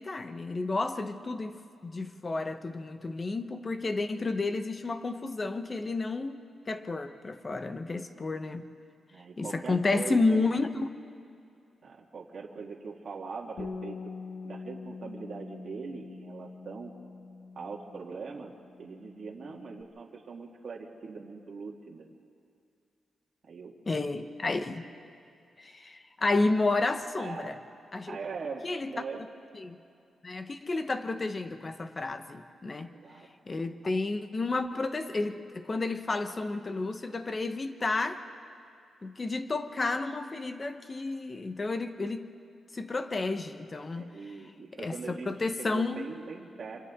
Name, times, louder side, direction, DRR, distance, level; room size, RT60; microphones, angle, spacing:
voice 1, 0.0-8.7 9.4-10.9 23.9-24.9 25.6-27.6 27.9-28.2 28.6-28.9 29.5-29.8 30.2-32.9 33.5-38.2 39.0-42.3 42.7-44.1 44.8-46.1, left 3 dB, 30° left, 8 dB, 1.1 m, -31 dB
voice 2, 9.1-10.4 11.8-14.0 14.4-16.9 17.6-18.5 18.8-22.1 23.4-23.7 27.2-27.6 28.1-29.2 32.8-33.3 43.9-45.3 45.6-46.8, right 4 dB, 55° right, -1 dB, 1.9 m, -41 dB
Bass guitar, 13.6-19.8, left 4 dB, 70° left, 1.6 m, -44 dB
27.0 x 27.0 x 3.7 m, 2.5 s
cardioid pair, 110°, 0 cm